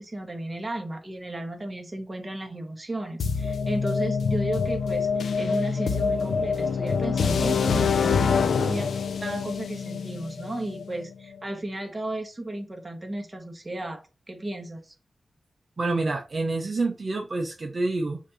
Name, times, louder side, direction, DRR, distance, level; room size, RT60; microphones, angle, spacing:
voice 1, 0.0-14.9, right 1 dB, 20° right, 1.5 m, -34 dB
sound 1, 3.2-11.1, left 5 dB, 90° left, 0.5 m, -25 dB
voice 2, 15.8-18.2, right 3 dB, 40° right, 0.8 m, -27 dB
6.4 x 2.8 x 5.5 m
wide cardioid pair, 115°, 0 cm